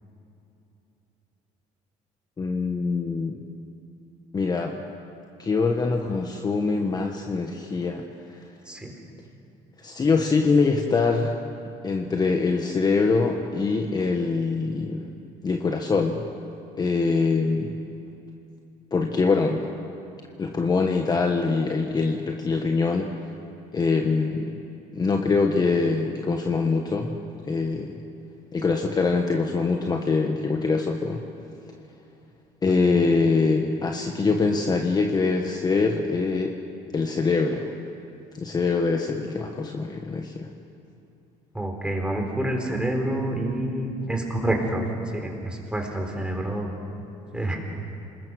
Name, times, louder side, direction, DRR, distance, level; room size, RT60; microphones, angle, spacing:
voice 1, 2.4-3.4 4.3-4.8 5.4-8.0 9.8-11.3 11.8-15.1 15.4-16.2 16.8-17.7 18.9-19.7 20.4-23.1 23.7-24.5 24.9-27.2 27.5-27.9 28.5-31.2 32.6-36.5 36.9-37.7 38.4-40.5, left 4 dB, 25° left, 3 dB, 1.4 m, -23 dB
voice 2, 41.5-44.8 45.1-46.7 47.3-47.6, right 1 dB, 5° right, 2 dB, 4.0 m, -27 dB
27.5 x 20.5 x 6.4 m, 2.7 s
cardioid pair, 120°, 15 cm